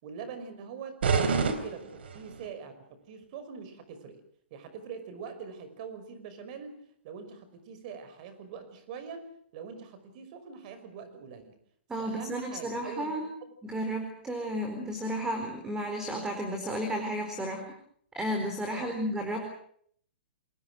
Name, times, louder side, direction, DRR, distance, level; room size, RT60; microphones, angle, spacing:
voice 1, 0.0-4.2 4.5-6.7 7.0-11.6 12.0-13.1 13.4-13.5 18.7-19.0, right 6 dB, 45° right, 10 dB, 5.7 m, -43 dB
sound 1, 1.0-2.5, right 5 dB, 70° right, 3.7 m, -28 dB
voice 2, 11.9-13.3 13.6-17.7 18.1-19.4, equal, 10° right, 5 dB, 4.1 m, -33 dB
29.0 x 22.5 x 6.3 m, 0.63 s
hypercardioid pair, 135°, 6 cm